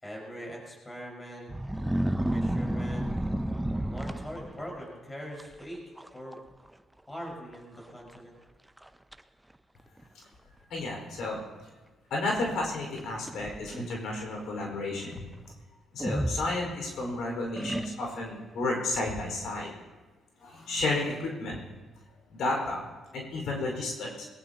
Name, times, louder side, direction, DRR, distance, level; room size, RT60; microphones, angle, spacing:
voice 1, 0.0-1.5 2.3-3.1 3.7-5.8 6.1-6.4 7.1-8.4, equal, 15° left, -2 dB, 5.4 m, -42 dB
sound 1, 1.5-4.8 5.4-5.6 6.0-6.4 6.7-6.8 7.5-7.6 8.1-8.2 8.8-9.2 10.0-10.1 13.0-14.0 16.0-17.1 17.6-18.3, right 1 dB, 5° right, 0.6 m, -31 dB
voice 2, 10.7-11.4 12.1-15.2 15.9-19.7 20.4-21.6 22.3-22.8 23.1-24.2, left 2 dB, 75° left, -1 dB, 5.0 m, -32 dB
21.0 x 18.0 x 3.0 m, 1.2 s
cardioid pair, 90°, 0 cm